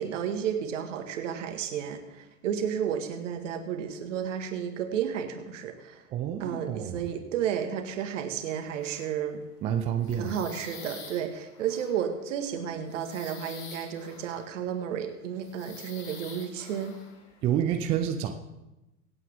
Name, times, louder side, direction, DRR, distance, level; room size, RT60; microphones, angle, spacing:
voice 1, 0.0-6.0 6.4-9.4 10.1-16.9, right 8 dB, 55° right, 6 dB, 1.9 m, -32 dB
voice 2, 6.1-7.0 9.6-10.4 17.4-18.3, right 9 dB, 15° right, 7 dB, 0.4 m, -28 dB
sound 1, 8.4-9.4 9.7-14.8 15.4-17.7, left 6 dB, 40° left, 2.7 m, -48 dB
24.5 x 8.3 x 3.6 m, 0.96 s
figure-of-eight pair, 95°, 45 cm